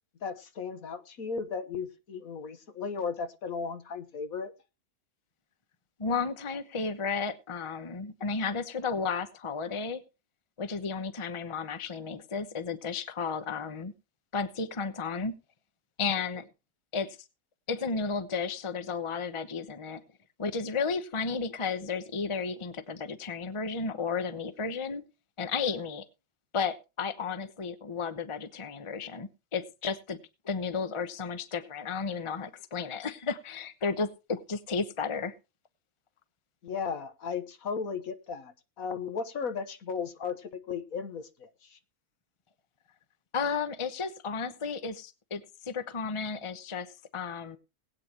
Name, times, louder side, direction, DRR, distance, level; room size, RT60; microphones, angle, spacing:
voice 1, 0.2-4.5 36.6-41.8, left 5 dB, 65° left, 1.6 m, -36 dB
voice 2, 6.0-10.0 10.6-13.9 14.3-15.3 16.0-16.4 16.9-17.2 17.7-20.0 20.4-25.0 25.4-26.1 26.5-30.2 30.4-35.3 43.3-47.6, left 5 dB, 25° left, 0.9 m, -33 dB
20.5 x 9.0 x 2.9 m
omnidirectional pair, 1.6 m